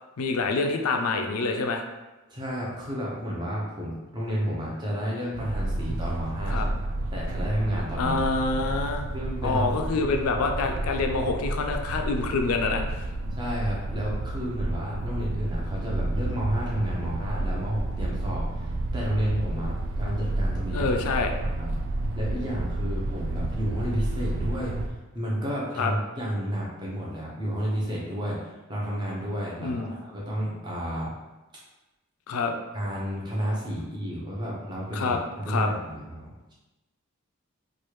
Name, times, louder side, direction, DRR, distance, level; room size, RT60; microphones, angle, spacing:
voice 1, 0.2-1.8 6.5-6.7 8.0-9.1 9.4-13.0 20.7-21.3 25.8-25.9 29.6-29.9 32.3-32.5 34.9-35.2 35.5-35.7, left 3 dB, 85° left, 4 dB, 0.4 m, -26 dB
voice 2, 2.3-6.7 7.1-8.2 9.1-10.1 13.4-20.9 21.6-21.7 22.2-31.1 32.7-36.5, equal, 20° right, -4 dB, 0.7 m, -31 dB
sound 1, 5.3-24.9, right 2 dB, 65° right, 0.3 m, -30 dB
3.1 x 2.4 x 3.1 m, 1.1 s
head